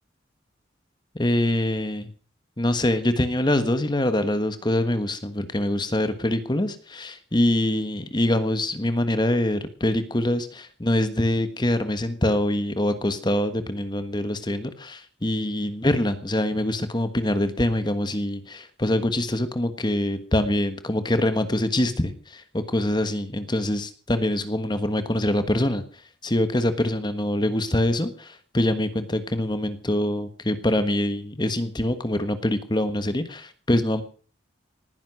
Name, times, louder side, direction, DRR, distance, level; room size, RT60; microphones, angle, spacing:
voice 1, 1.1-2.1 2.6-25.8 26.2-34.0, left 1 dB, 25° left, 10 dB, 1.4 m, -24 dB
19.0 x 10.5 x 6.3 m, 0.41 s
head